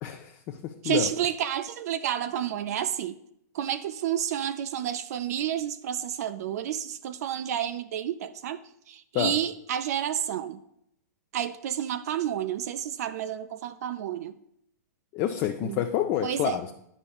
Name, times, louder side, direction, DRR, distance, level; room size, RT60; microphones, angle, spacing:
voice 1, 0.0-1.1 9.1-9.4 15.1-16.7, left 11 dB, 30° left, 5 dB, 0.4 m, -28 dB
voice 2, 0.8-3.2 3.5-8.6 8.9-10.6 11.3-14.4 15.6-15.8 16.2-16.6, right 10 dB, 60° right, 11 dB, 0.4 m, -30 dB
9.8 x 5.4 x 2.3 m, 0.74 s
hypercardioid pair, 140°, 10 cm